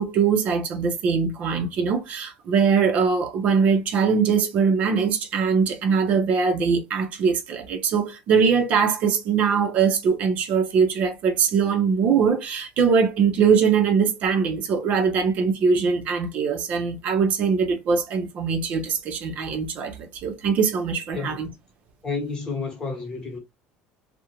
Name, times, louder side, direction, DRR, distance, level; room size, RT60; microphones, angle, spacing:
voice 1, 0.0-21.5, right 6 dB, 50° right, 0.5 m, -22 dB
voice 2, 22.0-23.4, left 4 dB, 25° left, 1.0 m, -30 dB
2.4 x 2.1 x 2.9 m
cardioid pair, 145°, 3 cm